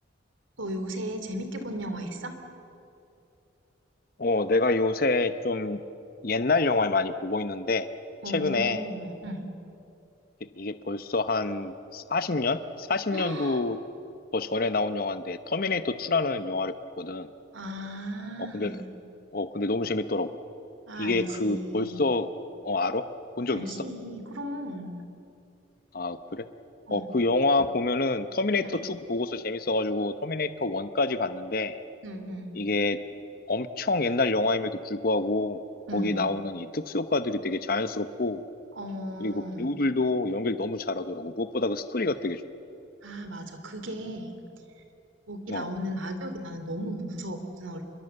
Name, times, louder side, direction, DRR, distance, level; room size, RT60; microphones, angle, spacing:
voice 1, 0.6-2.3 8.2-9.5 13.1-13.6 17.5-18.8 20.9-22.0 23.5-25.0 26.9-27.0 28.6-28.8 32.0-32.6 35.9-36.2 38.8-39.7 43.0-44.4 45.3-47.8, equal, 80° right, 7 dB, 2.9 m, -36 dB
voice 2, 4.2-5.8 6.2-7.9 8.3-8.8 10.6-13.8 14.3-17.3 18.5-18.8 19.3-20.3 21.0-22.3 22.6-23.0 23.4-23.7 25.9-26.4 26.9-31.8 32.6-33.0 33.5-35.6 35.9-38.4 39.2-42.4 45.5-45.7, left 3 dB, 45° left, 11 dB, 0.8 m, -27 dB
26.0 x 22.0 x 7.9 m, 2.7 s
head